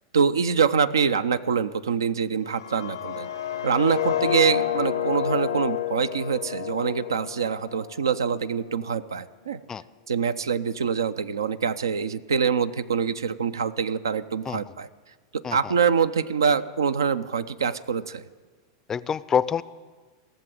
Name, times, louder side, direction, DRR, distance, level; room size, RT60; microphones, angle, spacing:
voice 1, 0.1-3.3 3.6-9.6 10.1-14.9 15.3-18.2, right 6 dB, 80° right, 14 dB, 0.5 m, -25 dB
sound 1, 2.5-8.4, left 11 dB, 80° left, 0.6 m, -29 dB
voice 2, 18.9-19.6, left 7 dB, 25° left, 18 dB, 0.4 m, -26 dB
17.0 x 7.0 x 7.6 m, 1.4 s
hypercardioid pair, 100°, 2 cm